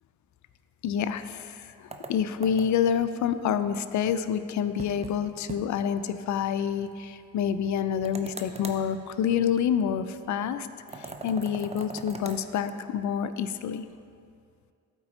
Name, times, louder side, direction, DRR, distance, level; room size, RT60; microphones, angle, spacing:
voice 1, 0.8-10.7 10.9-13.9, left 8 dB, 45° left, 12 dB, 0.5 m, -28 dB
sound 1, 1.9-2.9 4.8-5.2 5.5-5.6 5.9-6.0 8.0-8.8 10.9-12.4, right 3 dB, 15° right, 0.7 m, -40 dB
12.5 x 4.4 x 2.9 m, 2.3 s
hypercardioid pair, 45°, 40 cm